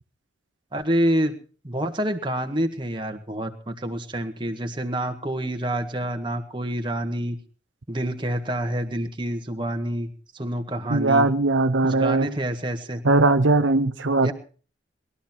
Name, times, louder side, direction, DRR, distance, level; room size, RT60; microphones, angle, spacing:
voice 1, 0.7-1.3 1.6-7.4 7.9-11.3 11.8-13.0 14.2-14.3, right 1 dB, 25° right, 1.7 m, -27 dB
voice 2, 10.9-12.3 13.0-14.3, right 2 dB, 85° right, 0.8 m, -20 dB
21.0 x 12.5 x 4.4 m
head